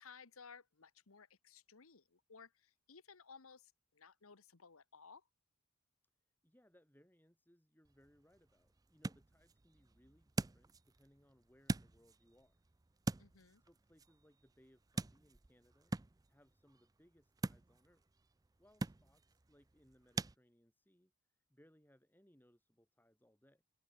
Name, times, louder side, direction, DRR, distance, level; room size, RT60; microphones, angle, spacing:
voice 1, 0.0-5.2 13.2-13.6, left 5 dB, 70° left, 1.2 m, -59 dB
voice 2, 6.4-12.6 13.6-15.9 16.3-18.1 18.6-23.6, equal, 10° left, 4.0 m, -70 dB
sound 1, 7.8-20.4, right 2 dB, 15° right, 0.4 m, -46 dB
head